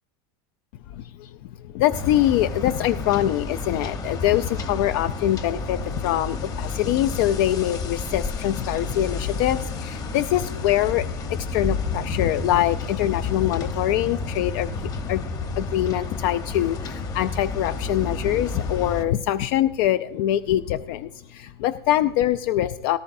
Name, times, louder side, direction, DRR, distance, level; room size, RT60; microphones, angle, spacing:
voice 1, 0.9-15.3 15.5-23.0, left 13 dB, 55° left, 13 dB, 0.4 m, -24 dB
sound 1, 1.9-19.0, left 4 dB, 25° left, 1.0 m, -31 dB
18.0 x 12.0 x 2.6 m, 0.87 s
supercardioid pair, 150°, 14 cm